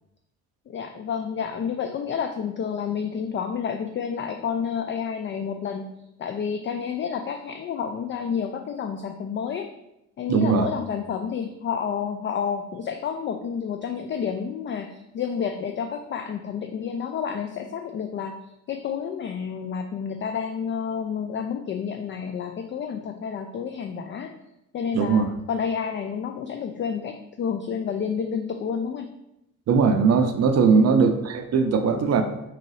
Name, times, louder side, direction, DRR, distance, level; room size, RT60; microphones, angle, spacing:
voice 1, 0.7-5.9 6.2-9.7 10.2-18.4 18.7-24.3 24.7-29.1 30.7-31.0, left 7 dB, 30° left, 5 dB, 0.4 m, -30 dB
voice 2, 10.3-10.7 24.9-25.3 29.7-32.2, right 5 dB, 40° right, 7 dB, 0.6 m, -20 dB
4.4 x 3.8 x 3.1 m, 0.88 s
figure-of-eight pair, 50°, 40 cm